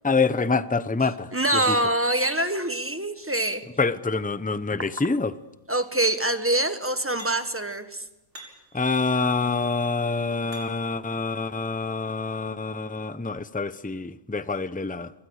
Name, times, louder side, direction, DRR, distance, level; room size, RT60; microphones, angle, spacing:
voice 1, 0.0-1.8 3.8-5.3 8.7-15.1, left 4 dB, 10° left, 14 dB, 0.4 m, -26 dB
voice 2, 1.3-3.6 5.7-8.0, right 1 dB, 10° right, 8 dB, 1.4 m, -25 dB
sound 1, 6.0-6.5 7.2-7.6 8.3-8.8 9.6-11.0 11.6-11.7, right 1 dB, 40° right, 6.1 m, -46 dB
28.0 x 23.0 x 6.5 m, 0.98 s
omnidirectional pair, 1.4 m